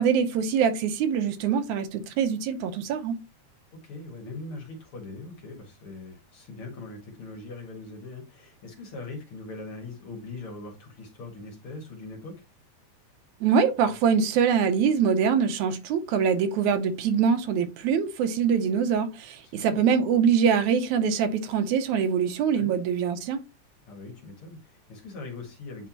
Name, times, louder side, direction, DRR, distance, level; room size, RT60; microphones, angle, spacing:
voice 1, 0.0-3.2 13.4-23.4, right 7 dB, 85° right, 2.2 m, -24 dB
voice 2, 3.8-12.4 19.4-19.8 22.6-22.7 23.9-25.9, left 3 dB, 50° left, 2.5 m, -41 dB
9.6 x 3.5 x 2.9 m
omnidirectional pair, 3.4 m